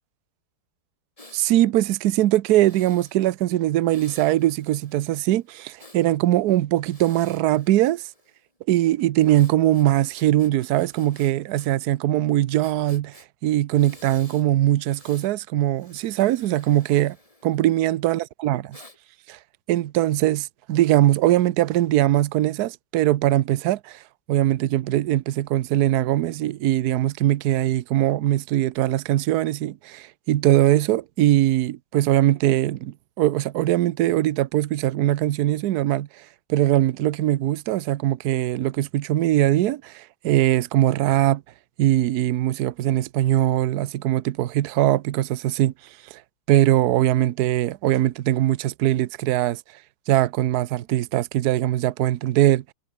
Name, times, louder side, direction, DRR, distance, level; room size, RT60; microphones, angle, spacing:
Breathing, 1.2-1.4 2.5-3.2 3.9-6.0 6.8-8.4 9.3-11.7 12.0-12.1 12.6-13.3 13.7-14.5 14.8-15.3 15.7-17.9 18.7-19.0, left 2 dB, 15° left, 3.2 m, -51 dB
voice 1, 1.3-8.0 8.7-17.2 17.4-18.6 19.3-19.4 19.7-24.0 24.3-41.4 41.8-45.7 46.1-46.2 46.5-49.6 50.1-52.6, right 14 dB, 65° right, 1.0 m, -21 dB
omnidirectional pair, 2.3 m